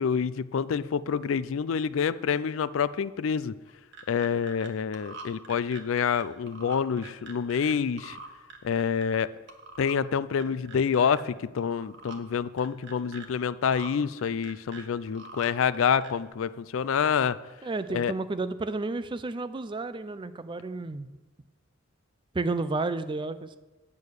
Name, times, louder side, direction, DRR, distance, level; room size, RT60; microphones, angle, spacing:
voice 1, 0.0-3.6 4.1-8.2 8.6-9.3 9.8-17.4 17.9-18.1, left 7 dB, 70° left, 16 dB, 0.4 m, -27 dB
sound 1, 3.7-4.7 4.9-7.7 8.0-9.2 9.5-10.0 10.3-11.2 11.6-12.2 12.6-13.3 13.6-13.9 14.2-15.5 15.7-16.3, right 4 dB, 60° right, 1.3 m, -45 dB
voice 2, 17.6-21.1 22.3-23.6, right 3 dB, 25° right, 13 dB, 0.4 m, -31 dB
8.8 x 8.4 x 6.4 m, 1.2 s
head